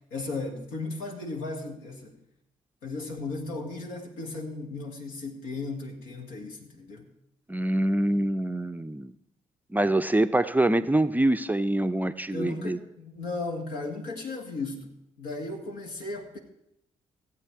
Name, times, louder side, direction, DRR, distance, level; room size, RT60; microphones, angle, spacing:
voice 1, 0.0-2.2 2.8-7.1 12.3-14.9 15.2-16.4, left 3 dB, 75° left, 2 dB, 1.8 m, -36 dB
voice 2, 7.5-9.1 9.7-12.8, right 1 dB, 10° right, 9 dB, 0.5 m, -25 dB
15.0 x 8.1 x 4.7 m, 0.79 s
hypercardioid pair, 45°, 16 cm